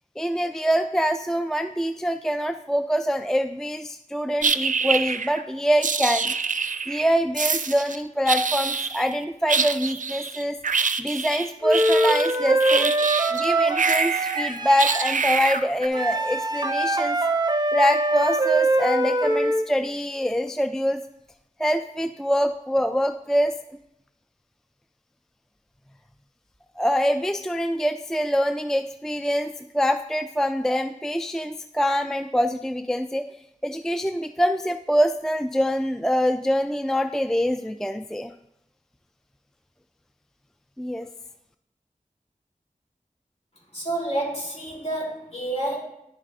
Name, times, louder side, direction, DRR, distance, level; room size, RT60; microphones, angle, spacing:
voice 1, 0.2-6.3 6.9-10.6 11.0-12.9 13.3-17.2 17.7-21.0 21.6-23.5 26.8-33.2 33.6-38.3 40.8-41.1, equal, 5° left, 8 dB, 0.3 m, -24 dB
sound 1, 4.4-5.4 5.8-7.1 7.3-8.0 8.3-9.1 9.5-13.4 13.7-15.9, right 5 dB, 65° right, 0.4 m, -25 dB
Wind instrument woodwind instrument, 11.6-15.1 15.9-19.7, right 2 dB, 30° right, 0.7 m, -23 dB
voice 2, 43.7-45.8, right 1 dB, 50° left, -5 dB, 3.6 m, -29 dB
10.0 x 7.3 x 2.7 m, 0.82 s
wide cardioid pair, 45°, 14 cm